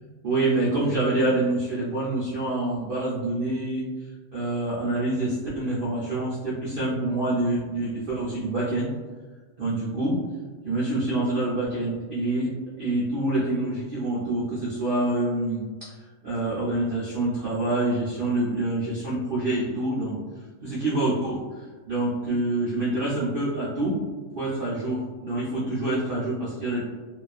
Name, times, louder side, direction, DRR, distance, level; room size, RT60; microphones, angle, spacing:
voice 1, 0.2-3.8 4.3-8.9 9.6-10.2 10.6-12.5 12.8-16.0 16.2-20.2 20.6-21.4 21.9-24.0 24.4-26.8, right 2 dB, 75° right, -8 dB, 0.5 m, -26 dB
2.6 x 2.3 x 2.4 m, 1.4 s
omnidirectional pair, 1.6 m